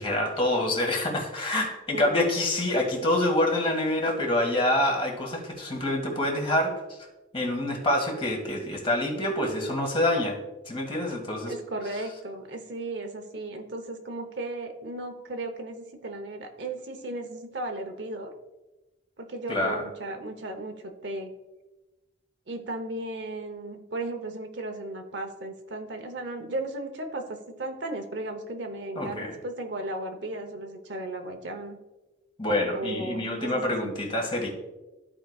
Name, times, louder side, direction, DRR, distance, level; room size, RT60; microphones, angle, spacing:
voice 1, 0.0-6.7 7.3-10.4 10.7-11.5 19.5-19.8 28.9-29.3 32.4-34.5, left 1 dB, 30° left, 1 dB, 1.6 m, -26 dB
voice 2, 11.5-18.3 19.2-21.3 22.5-31.8 32.7-33.9, right 2 dB, 65° right, 5 dB, 0.9 m, -35 dB
14.0 x 4.8 x 2.3 m, 1.1 s
head